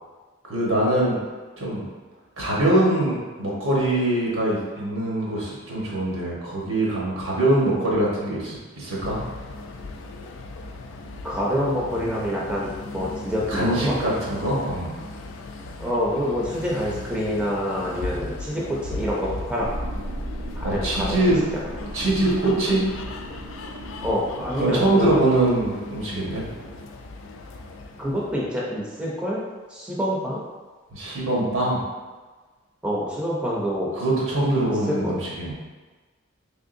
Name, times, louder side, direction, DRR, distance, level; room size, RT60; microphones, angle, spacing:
voice 1, 0.5-1.2 1.6-1.9 2.4-9.2 13.5-14.9 20.6-21.4 21.9-22.8 24.5-26.4 30.9-31.8 33.9-35.5, right 1 dB, 90° right, -5 dB, 1.2 m, -23 dB
sound 1, 9.0-28.5, left 2 dB, 70° left, 0.3 m, -37 dB
voice 2, 11.2-14.0 15.8-19.7 20.6-21.1 21.5-21.6 24.0-25.2 28.0-29.4 29.7-30.4 32.8-33.9 34.9-35.2, equal, 5° right, -5 dB, 0.5 m, -26 dB
sound 2, 19.6-26.8, right 1 dB, 60° right, 0.5 m, -37 dB
3.6 x 3.3 x 2.5 m, 1.3 s
head